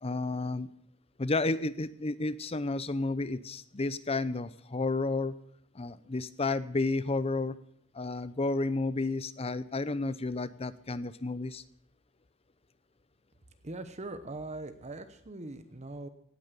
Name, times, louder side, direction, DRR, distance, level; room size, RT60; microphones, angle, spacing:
voice 1, 0.0-0.7 1.2-5.3 5.7-7.6 7.9-11.6, left 3 dB, 30° left, 15 dB, 0.7 m, -31 dB
voice 2, 13.6-16.1, right 2 dB, 35° right, 9 dB, 0.9 m, -41 dB
17.5 x 9.4 x 6.8 m, 0.65 s
head